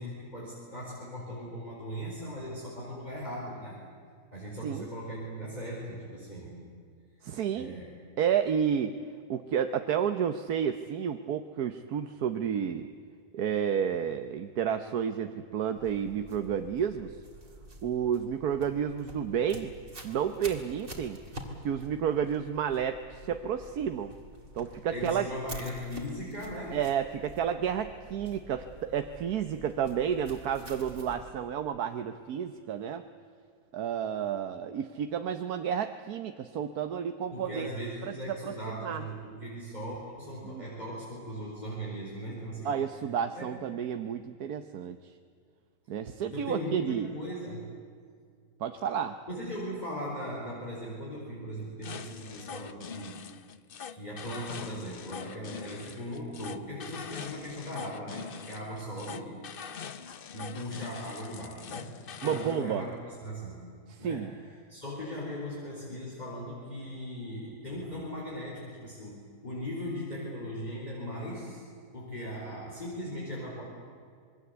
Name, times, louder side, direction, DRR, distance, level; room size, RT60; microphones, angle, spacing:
voice 1, 0.0-3.8 4.3-6.6 7.5-8.0 24.9-26.8 37.3-42.7 43.3-43.5 46.3-47.8 49.3-53.2 53.9-59.4 60.3-62.9 63.2-64.4 64.7-69.1 69.4-71.6 71.9-73.7, equal, 25° left, -4 dB, 4.5 m, -39 dB
voice 2, 7.2-7.7 8.2-8.9 9.3-12.9 13.3-17.2 17.8-19.7 20.0-21.2 21.6-24.1 24.5-25.3 26.7-33.0 33.7-37.7 38.0-38.5 38.8-39.0 40.4-40.6 42.6-45.1 45.9-47.1 48.6-49.1 62.2-62.9 63.9-64.3, right 8 dB, 65° right, 8 dB, 1.3 m, -31 dB
sound 1, 15.8-31.3, right 1 dB, 30° right, 3.2 m, -48 dB
sound 2, 51.8-62.6, left 7 dB, 50° left, 0.7 m, -43 dB
26.5 x 22.0 x 8.1 m, 2.2 s
omnidirectional pair, 1.8 m